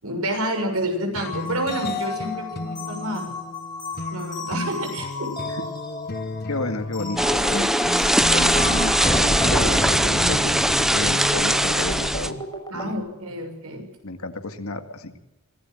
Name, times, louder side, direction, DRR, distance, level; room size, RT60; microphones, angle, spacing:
voice 1, 0.0-3.3 4.1-5.3 12.7-13.9, right 1 dB, 90° right, 5 dB, 6.6 m, -29 dB
sound 1, 1.2-12.4, left 2 dB, 45° left, 1.0 m, -35 dB
sound 2, 1.2-12.9, left 1 dB, 20° left, 6.0 m, -32 dB
voice 2, 6.5-7.7 8.3-12.4 12.7-13.0 14.0-15.2, left 2 dB, 80° left, 8 dB, 2.1 m, -31 dB
sound 3, 7.2-12.3, equal, ahead, 0.8 m, -20 dB
24.0 x 17.0 x 7.7 m, 0.98 s
head